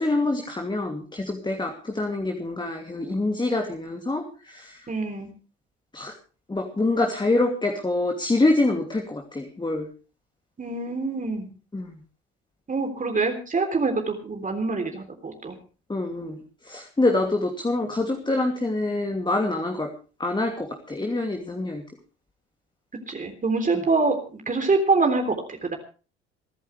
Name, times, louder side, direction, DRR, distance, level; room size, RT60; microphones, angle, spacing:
voice 1, 0.0-4.8 5.9-6.1 6.5-9.9 11.7-11.9 15.9-19.9 20.2-21.8, left 2 dB, 15° left, 3 dB, 2.8 m, -26 dB
voice 2, 4.9-5.3 10.6-11.5 12.7-15.6 23.1-25.8, right 3 dB, 25° right, 4 dB, 3.6 m, -25 dB
28.0 x 11.0 x 3.4 m, 0.36 s
figure-of-eight pair, 60°, 33 cm